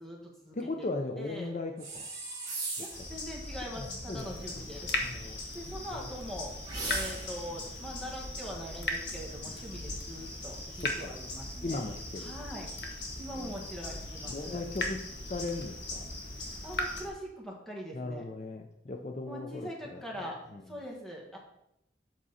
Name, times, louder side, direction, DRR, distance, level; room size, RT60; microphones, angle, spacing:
voice 1, 0.0-0.9 1.2-1.6 2.8-4.9 5.5-6.5 6.9-11.8 12.2-12.7 13.2-14.6 16.6-18.2 19.3-20.4 20.7-21.4, equal, ahead, -3 dB, 1.6 m, -42 dB
voice 2, 0.5-2.1 3.7-4.4 5.0-5.4 5.9-6.1 9.5-9.6 10.7-11.1 11.6-12.3 13.3-13.7 14.3-16.1 17.9-20.6, left 2 dB, 40° left, 4 dB, 0.5 m, -38 dB
sound 1, 1.8-3.1 6.6-7.5, right 3 dB, 25° right, 2.7 m, -37 dB
sound 2, 2.9-17.0, left 2 dB, 90° left, 2.6 m, -42 dB
Water tap faucet / Drip, 4.2-17.1, left 2 dB, 65° left, 1.1 m, -40 dB
7.6 x 6.1 x 4.1 m, 0.81 s
head